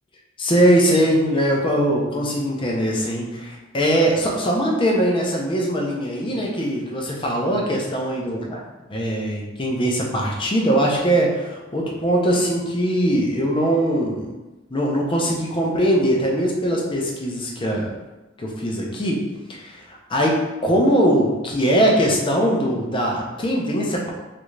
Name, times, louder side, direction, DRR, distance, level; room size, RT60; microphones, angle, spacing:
voice 1, 0.4-8.6 8.9-14.3 14.7-17.9 18.4-19.2 19.5-24.1, equal, 25° left, -2 dB, 0.6 m, -21 dB
3.3 x 2.5 x 3.1 m, 1.1 s
head